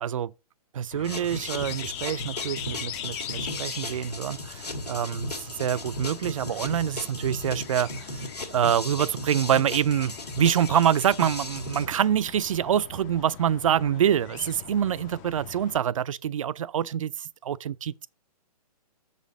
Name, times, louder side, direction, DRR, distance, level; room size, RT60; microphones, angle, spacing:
voice 1, 0.7-5.3 5.6-8.1 8.5-18.1, right 9 dB, 55° right, 0.5 m, -26 dB
sound 1, 0.9-15.8, left 10 dB, 25° left, 0.6 m, -41 dB
sound 2, 1.0-11.9, left 1 dB, 90° left, 2.0 m, -36 dB
6.9 x 4.2 x 6.5 m
figure-of-eight pair, 130°, 20 cm